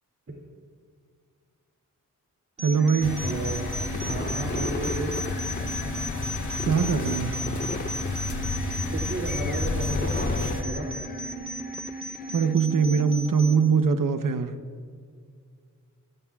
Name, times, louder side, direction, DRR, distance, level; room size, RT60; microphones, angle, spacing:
sound 1, 2.6-13.6, equal, 20° right, 3.3 m, -35 dB
voice 1, 2.6-3.2 6.6-7.3 12.3-14.6, right 6 dB, 70° right, 8 dB, 0.9 m, -22 dB
sound 2, 2.8-12.5, left 4 dB, 30° left, 0.6 m, -38 dB
sound 3, 3.0-10.6, left 3 dB, 60° left, 2.1 m, -31 dB
voice 2, 3.2-3.6 4.1-5.2 8.9-10.9, right 2 dB, 40° right, -1 dB, 2.5 m, -33 dB
27.0 x 17.5 x 2.4 m, 2.1 s
wide cardioid pair, 100°, 33 cm